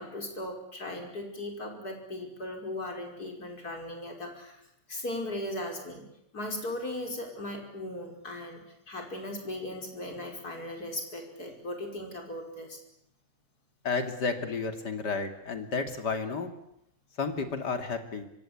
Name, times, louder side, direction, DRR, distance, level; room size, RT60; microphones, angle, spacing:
voice 1, 0.0-4.6 4.9-6.0 6.3-12.8, left 1 dB, 65° left, 2 dB, 5.8 m, -38 dB
voice 2, 13.8-16.5 17.2-18.2, left 4 dB, 80° left, 6 dB, 3.1 m, -32 dB
25.0 x 24.5 x 8.6 m, 0.78 s
omnidirectional pair, 1.8 m